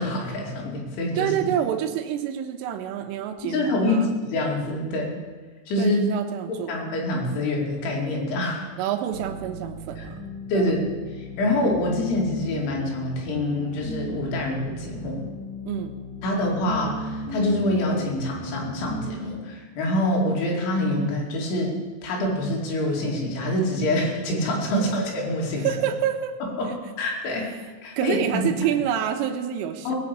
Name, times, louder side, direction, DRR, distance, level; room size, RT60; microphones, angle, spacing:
voice 1, 0.0-1.3 3.4-5.1 5.7-6.0 6.5-8.7 10.0-10.1 10.5-15.2 16.2-21.7 22.0-25.7 26.6-26.7 27.0-27.5 27.8-28.4 29.8-30.0, left 1 dB, 70° left, -2 dB, 5.1 m, -26 dB
voice 2, 1.2-4.1 5.8-6.8 8.8-10.2 10.5-10.7 15.7-15.9 24.7-24.9 25.6-26.3 26.6-26.7 27.6-27.7 28.0-30.0, right 10 dB, 85° right, 5 dB, 3.5 m, -27 dB
sound 1, 9.1-19.1, equal, 45° left, 4.3 m, -36 dB
19.5 x 7.0 x 8.5 m, 1.4 s
omnidirectional pair, 5.7 m